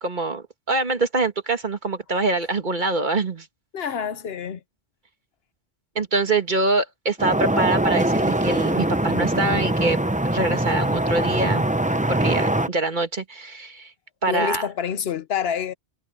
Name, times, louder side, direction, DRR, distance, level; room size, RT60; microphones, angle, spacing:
voice 1, 0.0-3.5 6.0-10.0 10.3-11.7 12.1-13.9 14.2-14.7, right 3 dB, 45° right, 2.1 m, -24 dB
voice 2, 3.7-4.6 14.3-15.7, left 8 dB, 70° left, 1.1 m, -27 dB
sound 1, 7.2-12.7, right 1 dB, 10° right, 0.7 m, -22 dB
omnidirectional pair, 1.1 m